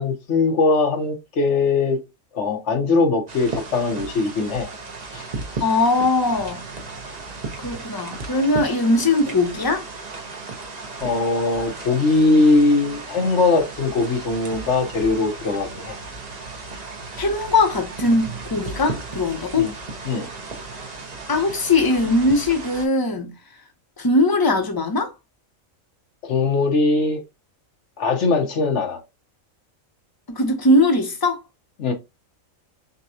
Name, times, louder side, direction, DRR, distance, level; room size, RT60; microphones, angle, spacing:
voice 1, 0.0-2.0 2.3-4.7 5.1-5.2 11.0-16.0 19.5-19.7 20.0-20.3 26.2-27.2 28.0-29.0 31.8-31.9, left 3 dB, 60° left, 1.2 m, -20 dB
sound 1, 3.3-22.9, right 3 dB, 35° right, 0.8 m, -35 dB
voice 2, 5.6-6.6 7.6-9.8 17.2-19.7 21.3-23.3 24.0-25.1 30.3-31.4, left 2 dB, 20° left, 0.8 m, -20 dB
6.6 x 2.3 x 2.7 m
omnidirectional pair, 1.4 m